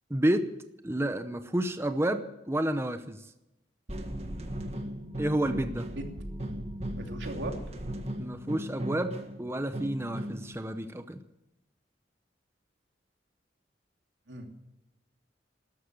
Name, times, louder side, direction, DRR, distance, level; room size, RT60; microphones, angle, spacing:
voice 1, 0.1-0.5 0.8-3.2 5.2-5.9 8.2-11.2, right 1 dB, 15° right, 9 dB, 0.7 m, -30 dB
sound 1, 3.9-10.5, right 1 dB, 35° right, 1.6 m, -37 dB
voice 2, 6.9-7.5 14.3-14.6, right 1 dB, 85° right, 2 dB, 2.9 m, -37 dB
13.5 x 12.0 x 7.6 m, 0.90 s
head